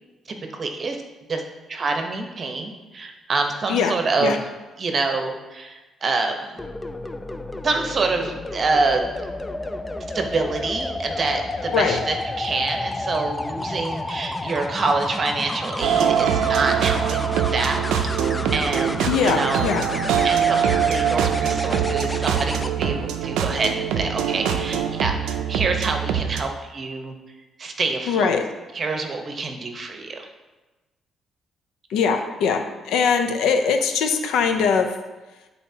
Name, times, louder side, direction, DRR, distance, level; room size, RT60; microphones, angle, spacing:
voice 1, 0.3-1.0 1.3-1.4 1.7-4.4 4.8-6.6 7.6-9.0 10.1-18.1 18.5-19.6 20.2-27.2 27.6-28.4 28.7-30.3, right 3 dB, 45° right, 4 dB, 0.9 m, -26 dB
sound 1, 6.6-22.7 24.6-24.9, left 2 dB, 15° left, 0.4 m, -31 dB
sound 2, 15.8-26.4, right 8 dB, 90° right, 0.4 m, -23 dB
voice 2, 19.1-19.9 28.0-28.4 31.9-35.0, left 6 dB, 85° left, 6 dB, 0.6 m, -21 dB
10.0 x 4.1 x 2.8 m, 1.2 s
cardioid pair, 90°, 0 cm